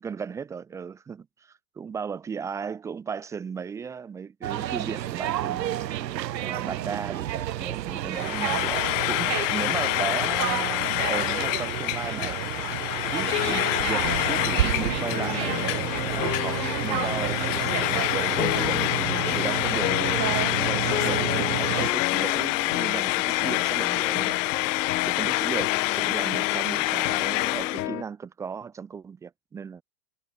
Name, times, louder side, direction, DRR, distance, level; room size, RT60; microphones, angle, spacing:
voice 1, 0.0-5.9 6.4-12.4 13.1-24.7 25.1-29.8, right 6 dB, 5° right, 0.3 m, -36 dB
sound 1, 4.4-21.9, right 12 dB, 90° right, 2.1 m, -30 dB
Frying (food), 8.1-27.9, left 24 dB, 50° left, 0.5 m, -27 dB
sound 2, 13.2-28.0, left 14 dB, 80° left, 3.5 m, -33 dB
supercardioid pair, 130°, 49 cm